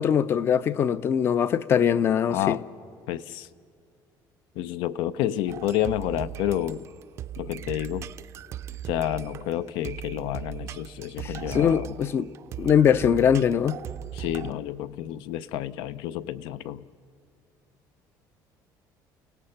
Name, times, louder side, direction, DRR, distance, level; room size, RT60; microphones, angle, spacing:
voice 1, 0.0-2.6 11.2-12.3 12.6-13.8, left 8 dB, 30° left, 0.4 m, -22 dB
voice 2, 2.3-2.6 3.1-3.5 4.6-6.8 7.4-8.1 8.9-12.0 14.1-16.8, left 12 dB, 90° left, 0.6 m, -29 dB
sound 1, 5.5-14.5, right 11 dB, 35° right, 0.4 m, -39 dB
30.0 x 17.0 x 5.7 m
cardioid pair, 175°, 8 cm